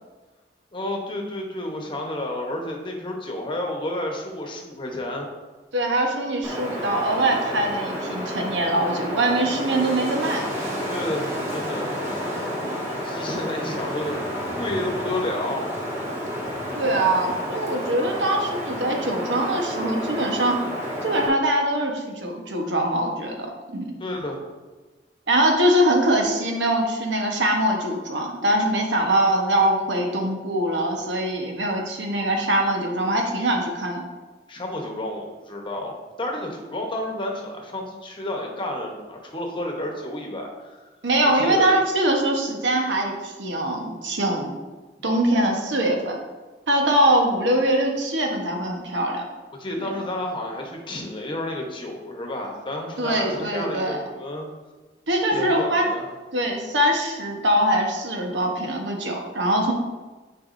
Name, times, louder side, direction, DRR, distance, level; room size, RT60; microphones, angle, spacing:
voice 1, 0.7-5.3 10.9-12.0 13.0-15.6 24.0-24.4 34.5-40.8 41.3-41.8 49.6-54.5 55.3-56.1, left 1 dB, 30° left, 1 dB, 1.0 m, -31 dB
voice 2, 5.7-10.4 16.7-20.6 21.0-23.5 23.7-23.9 25.3-34.1 41.0-44.5 45.0-46.2 46.7-49.2 49.8-49.9 53.0-54.0 55.1-55.8 56.3-59.7, right 1 dB, 90° right, 1 dB, 1.1 m, -22 dB
Wind, 6.4-21.3, equal, 15° right, 1.3 m, -30 dB
9.2 x 4.7 x 2.6 m, 1.2 s
head